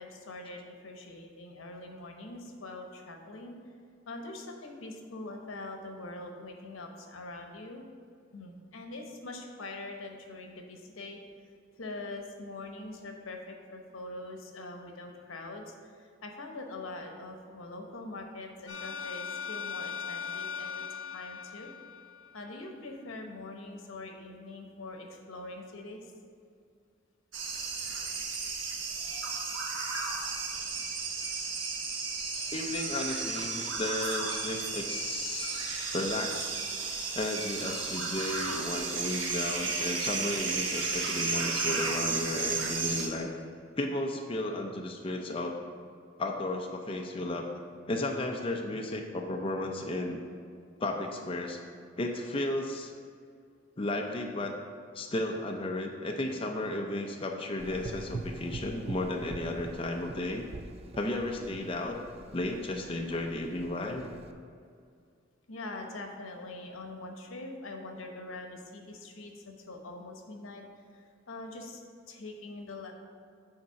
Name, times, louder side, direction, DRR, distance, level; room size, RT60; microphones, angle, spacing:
voice 1, 0.0-3.6 4.1-7.8 8.3-11.2 11.8-21.7 22.3-26.0 65.5-70.6 70.9-71.8 72.1-72.9, left 2 dB, 90° left, 3 dB, 0.9 m, -43 dB
sound 1, 18.7-22.6, left 6 dB, 70° left, 1.2 m, -39 dB
sound 2, 27.3-43.1, right 4 dB, 65° right, 1.0 m, -33 dB
voice 2, 32.5-35.5 35.9-36.5 37.2-43.3 43.8-45.6 46.2-47.5 47.9-50.2 50.8-51.6 52.0-52.9 53.8-54.6 54.9-60.5 61.0-62.0 62.3-64.1, left 1 dB, 25° left, 2 dB, 0.5 m, -34 dB
Gurgling / Engine, 57.6-64.3, right 3 dB, 30° right, 0.3 m, -44 dB
7.9 x 4.1 x 5.7 m, 2.2 s
head